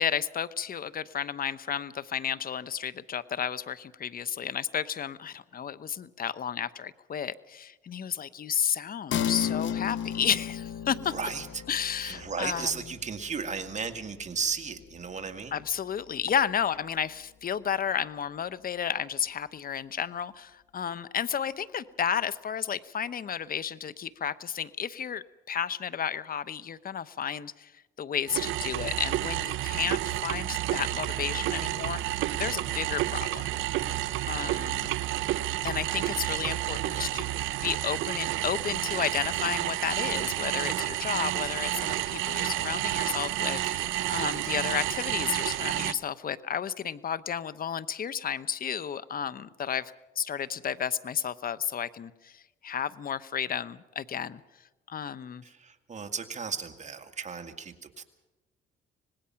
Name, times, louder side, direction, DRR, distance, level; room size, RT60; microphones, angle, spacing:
voice 1, 0.0-11.2 11.7-12.7 15.5-27.7 28.0-33.5 34.2-35.0 35.6-37.3 37.6-54.4 54.9-55.4, left 8 dB, 45° left, 16 dB, 0.9 m, -32 dB
sound 1, 9.1-16.1 16.5-16.6, left 8 dB, 70° left, 1.3 m, -35 dB
voice 2, 11.1-11.6 12.0-15.6 35.9-37.1 55.4-58.0, right 5 dB, 35° right, 7 dB, 2.1 m, -35 dB
sound 2, 28.3-45.9, right 15 dB, 85° right, 0.7 m, -30 dB
25.5 x 19.5 x 5.8 m, 1.1 s
cardioid pair, 90°, 20 cm